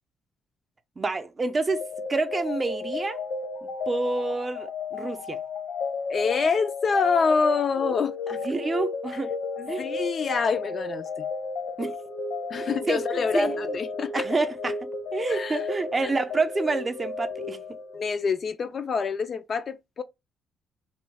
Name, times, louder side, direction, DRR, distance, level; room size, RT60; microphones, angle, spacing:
voice 1, 1.0-1.8 2.1-3.2 3.6-5.4 8.4-9.3 9.7-9.9 11.8-11.9 12.6-13.6 14.1-14.8 15.1-17.6, right 3 dB, 25° right, 0.5 m, -28 dB
sound 1, 1.7-18.3, left 4 dB, 80° left, 0.9 m, -33 dB
voice 2, 6.1-8.4 9.1-9.2 9.6-11.3 12.5-14.2 15.3-15.7 17.9-20.0, left 5 dB, 50° left, 0.3 m, -26 dB
3.0 x 2.3 x 3.3 m
cardioid pair, 90°, 0 cm